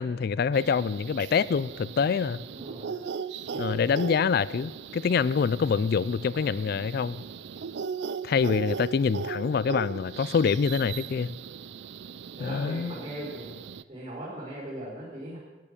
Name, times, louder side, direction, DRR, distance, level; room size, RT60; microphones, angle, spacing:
voice 1, 0.0-2.4 3.6-7.2 8.2-11.3 12.4-12.9, left 6 dB, 60° left, 19 dB, 0.3 m, -26 dB
sound 1, 0.5-13.8, right 6 dB, 80° right, 0.4 m, -38 dB
voice 2, 2.5-3.0 3.5-3.7 8.4-8.7 12.4-13.6 13.9-15.4, right 1 dB, 40° right, -10 dB, 4.5 m, -39 dB
14.5 x 9.8 x 6.7 m, 1.2 s
head